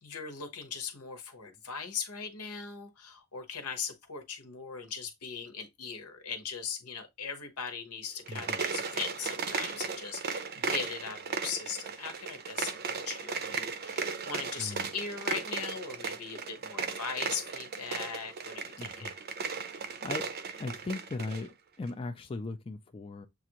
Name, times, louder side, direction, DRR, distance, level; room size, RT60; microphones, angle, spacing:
voice 1, 0.0-19.1, left 6 dB, 80° left, 1.0 m, -39 dB
sound 1, 8.2-21.5, right 5 dB, 45° right, 0.6 m, -36 dB
voice 2, 8.3-8.6 14.6-14.9 18.8-19.1 19.6-20.3 20.6-23.3, left 3 dB, 25° left, 0.4 m, -39 dB
7.0 x 2.5 x 2.9 m
head